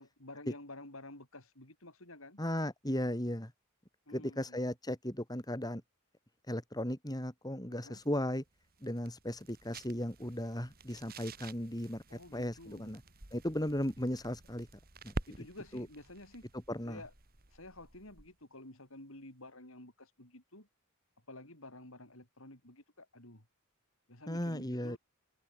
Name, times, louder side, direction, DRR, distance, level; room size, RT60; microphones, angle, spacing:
voice 1, 0.0-2.4 4.1-4.7 7.7-8.0 12.1-13.0 15.3-16.5 16.8-17.1 17.5-20.7 21.3-23.5 24.1-25.0, left 1 dB, 65° left, 7.2 m, -51 dB
voice 2, 2.4-3.5 4.1-5.8 6.5-8.4 8.8-13.0 13.3-14.7 15.0-15.1 15.7-15.9 16.7-17.0 24.3-25.0, left 1 dB, 15° left, 4.0 m, -36 dB
sound 1, 7.8-18.4, right 2 dB, 45° right, 2.7 m, -49 dB
head